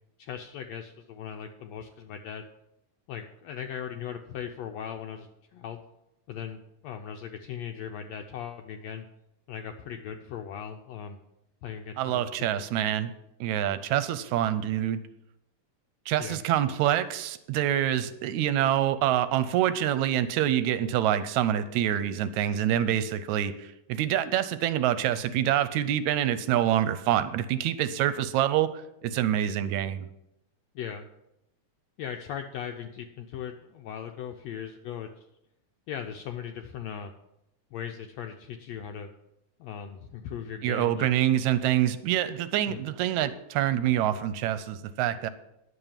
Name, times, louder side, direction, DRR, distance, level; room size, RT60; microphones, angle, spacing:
voice 1, 0.2-2.4 3.1-5.8 6.3-9.1 9.5-11.2 11.6-12.6 16.2-16.4 30.7-31.1 32.0-35.3 35.9-37.1 37.7-39.1 39.6-41.1 42.7-42.8, left 8 dB, 75° left, 5 dB, 1.6 m, -38 dB
voice 2, 12.0-13.1 13.4-15.0 16.1-30.1 40.6-45.3, right 11 dB, 80° right, 13 dB, 1.9 m, -26 dB
10.5 x 7.0 x 7.3 m, 0.84 s
omnidirectional pair, 3.6 m